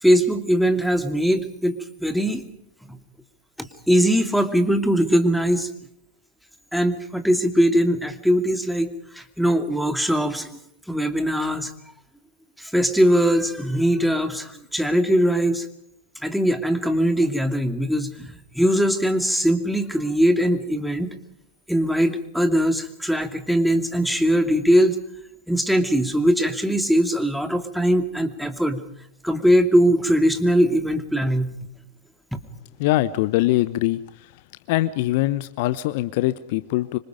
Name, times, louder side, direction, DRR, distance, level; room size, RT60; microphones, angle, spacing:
voice 1, 0.0-2.4 2.9-3.0 3.6-5.7 6.7-8.9 9.1-10.6 10.9-11.7 12.6-15.7 16.2-21.1 21.7-25.0 25.5-28.8 29.2-31.6, equal, ahead, 7 dB, 2.5 m, -21 dB
voice 2, 32.8-34.4 34.7-37.0, left 16 dB, 50° left, 15 dB, 0.9 m, -23 dB
26.0 x 25.5 x 5.1 m, 0.74 s
figure-of-eight pair, 90°, 0 cm